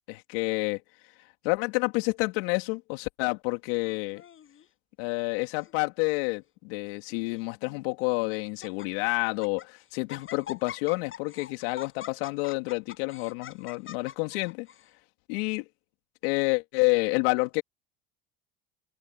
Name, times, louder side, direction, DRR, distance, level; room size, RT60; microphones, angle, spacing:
voice 1, 0.1-0.8 1.4-4.2 5.0-14.7 15.3-15.6 16.2-17.6, left 28 dB, 75° left, 3.4 m, -29 dB
Laughter, 3.8-4.7 5.4-5.7 6.0-6.1 6.9-7.5 8.0-8.1 8.5-8.9 9.3-9.7 10.1-14.9, left 9 dB, 40° left, 6.9 m, -45 dB
open air
hypercardioid pair, 85°, 31 cm